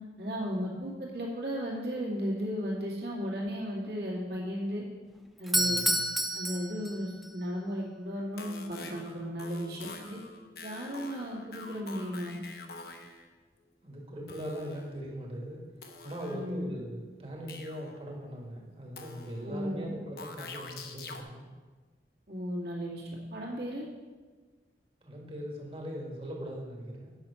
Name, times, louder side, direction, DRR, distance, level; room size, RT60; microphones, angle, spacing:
voice 1, 0.2-4.8 5.4-5.9 6.3-10.2 10.6-12.4 16.3-16.7 19.4-19.9 22.3-23.9, equal, 60° right, -4 dB, 2.3 m, -35 dB
Doorbell, 5.4-7.3, equal, ahead, 0.4 m, -29 dB
voice 2, 5.5-6.0 13.8-15.6 16.0-21.5 25.0-27.1, equal, 30° right, -1 dB, 1.7 m, -40 dB
sound 1, 8.2-13.3 14.3-15.2 15.8-16.7 17.5-18.1 19.0-19.6 20.2-21.2, left 3 dB, 60° left, 0.9 m, -46 dB
8.8 x 6.1 x 5.6 m, 1.3 s
head